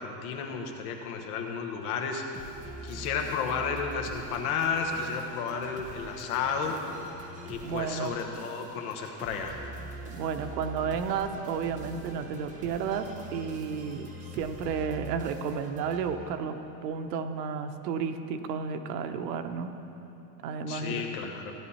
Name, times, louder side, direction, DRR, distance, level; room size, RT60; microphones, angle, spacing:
voice 1, 0.0-2.2 2.5-6.8 7.4-9.6 20.7-21.5, left 6 dB, 60° left, 3 dB, 1.5 m, -32 dB
sound 1, 2.3-16.6, right 2 dB, 15° right, 0.9 m, -44 dB
voice 2, 7.6-8.2 10.1-19.7 20.4-21.4, right 6 dB, 90° right, 7 dB, 1.1 m, -32 dB
15.5 x 10.5 x 4.3 m, 3.0 s
supercardioid pair, 175°, 47 cm